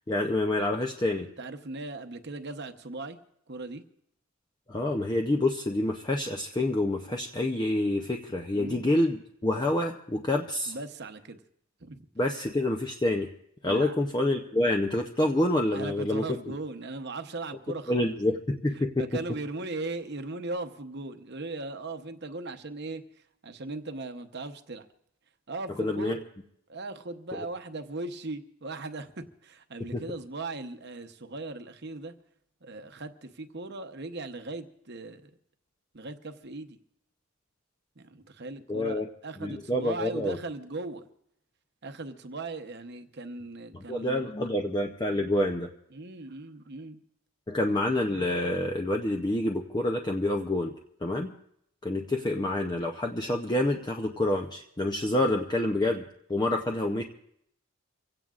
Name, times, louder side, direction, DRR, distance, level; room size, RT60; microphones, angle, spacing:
voice 1, 0.1-1.3 4.7-10.7 12.2-13.3 13.6-16.4 17.9-19.2 25.8-26.2 29.9-30.0 38.7-39.1 39.4-40.4 43.7-45.7 47.5-50.7 51.0-51.3 51.8-56.0 56.3-57.0, left 1 dB, 20° left, 2 dB, 0.6 m, -27 dB
voice 2, 1.4-3.2 3.5-3.8 8.5-8.9 10.7-11.4 11.8-12.1 13.6-14.0 15.7-18.2 18.8-23.0 23.4-24.9 25.5-26.1 26.7-32.1 32.6-35.3 35.9-36.8 38.0-41.0 41.8-44.2 45.9-47.0, right 2 dB, 50° right, 8 dB, 0.9 m, -38 dB
25.5 x 16.5 x 2.5 m, 0.73 s
head